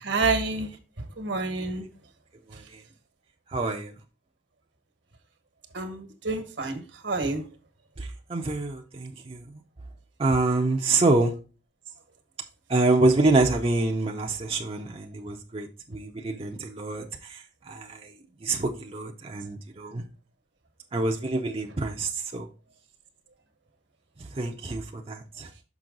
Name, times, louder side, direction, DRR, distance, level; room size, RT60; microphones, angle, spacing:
voice 1, 0.0-0.7 1.2-1.8 5.7-7.4, right 3 dB, 70° right, 1.3 m, -28 dB
voice 2, 2.5-2.8 3.5-3.9 8.0-9.4 10.2-11.3 12.7-18.1 18.4-20.0 20.9-22.5 24.3-25.5, right 2 dB, 30° right, 0.6 m, -26 dB
6.1 x 5.6 x 3.8 m
head